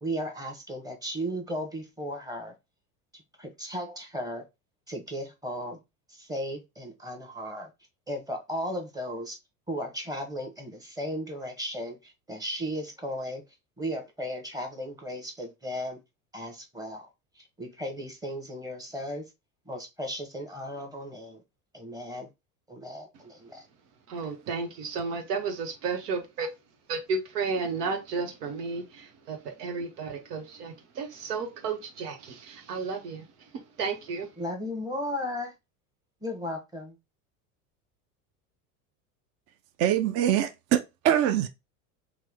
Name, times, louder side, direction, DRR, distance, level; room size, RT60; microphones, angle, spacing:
voice 1, 0.0-2.5 3.4-4.4 4.9-5.8 6.1-7.7 8.1-9.4 9.7-13.4 13.8-16.0 16.3-17.1 17.4-19.2 19.7-21.4 21.7-22.3 22.7-23.6 34.4-35.5 36.2-37.0, equal, 10° right, 0.9 m, -35 dB
voice 2, 24.1-26.5 26.9-33.2 33.8-34.3, right 4 dB, 90° right, 1.0 m, -33 dB
voice 3, 39.8-41.5, right 10 dB, 35° right, 0.4 m, -24 dB
3.0 x 2.2 x 3.4 m
hypercardioid pair, 90°, 45 cm